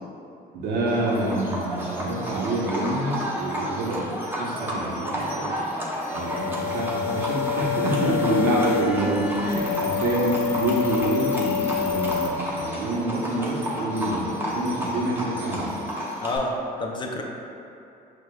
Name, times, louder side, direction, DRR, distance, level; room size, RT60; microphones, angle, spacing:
voice 1, 0.5-4.1 4.4-5.6 6.1-15.7, right 1 dB, 75° right, -4 dB, 0.8 m, -27 dB
Livestock farm animals working animals, 0.9-16.4, equal, 10° right, 0.6 m, -32 dB
sound 1, 6.1-12.3, left 8 dB, 80° left, 0.7 m, -28 dB
voice 2, 7.9-8.3 8.9-9.0 16.2-17.2, left 2 dB, 30° left, 1 dB, 0.4 m, -30 dB
5.9 x 2.2 x 2.2 m, 2.7 s
cardioid pair, 110°, 17 cm